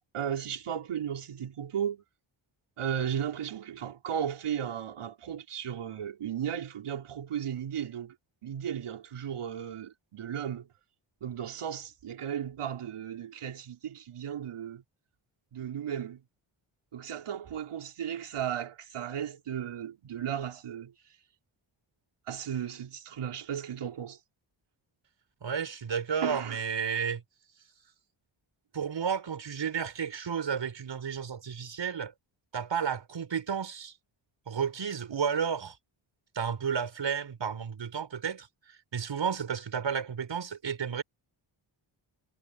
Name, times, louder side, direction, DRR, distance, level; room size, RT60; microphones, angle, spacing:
voice 1, 0.1-2.0 2.8-8.1 8.4-10.7 11.2-14.8 15.5-16.2 16.9-20.9 22.3-24.2 26.2-26.6, right 9 dB, 85° right, 4.4 m, -35 dB
voice 2, 25.4-27.2 28.7-32.1 32.5-33.9 34.5-35.8 36.3-41.0, right 7 dB, 60° right, 5.6 m, -32 dB
cardioid pair, 95°, 50 cm